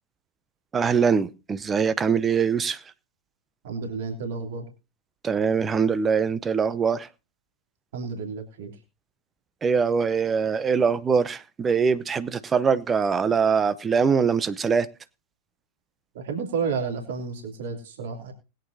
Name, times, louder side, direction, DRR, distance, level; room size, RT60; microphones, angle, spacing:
voice 1, 0.7-2.8 5.2-7.1 9.6-14.9, right 6 dB, 20° right, 0.8 m, -23 dB
voice 2, 3.6-4.7 7.9-8.7 16.1-18.3, right 5 dB, 55° right, 3.0 m, -31 dB
20.5 x 9.1 x 2.8 m
figure-of-eight pair, 90°, 0 cm